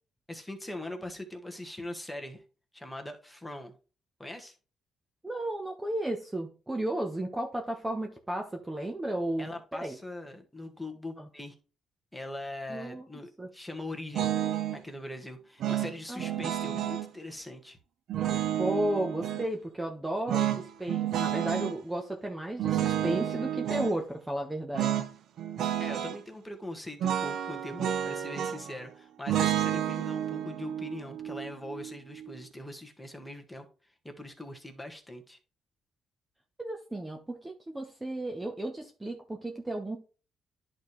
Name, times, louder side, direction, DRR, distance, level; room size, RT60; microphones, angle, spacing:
voice 1, 0.3-2.4 2.7-3.7 4.2-4.5 9.4-11.5 12.1-14.3 14.7-17.8 25.8-33.7 34.0-35.4, left 1 dB, 5° left, 4 dB, 1.5 m, -41 dB
voice 2, 5.2-10.0 11.2-11.3 12.7-13.1 13.4-13.5 16.1-16.5 18.6-25.0 36.6-40.0, right 1 dB, 15° right, 2 dB, 1.1 m, -34 dB
sound 1, 14.1-14.8 15.6-17.1 18.1-19.5 20.3-21.8 22.6-23.9 24.7-25.1 25.4-26.2 27.0-28.8 29.3-32.3, right 11 dB, 75° right, 0.6 m, -30 dB
10.5 x 4.3 x 3.2 m, 0.34 s
cardioid pair, 90°, 0 cm